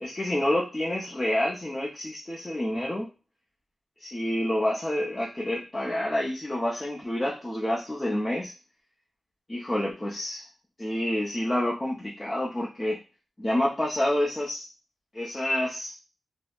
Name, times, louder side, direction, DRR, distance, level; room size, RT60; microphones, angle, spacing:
voice 1, 0.0-3.1 4.0-8.5 9.5-10.4 10.8-13.0 13.4-14.7 15.1-15.9, left 1 dB, 15° left, -5 dB, 0.5 m, -28 dB
5.1 x 2.0 x 2.3 m, 0.30 s
wide cardioid pair, 170°, 0 cm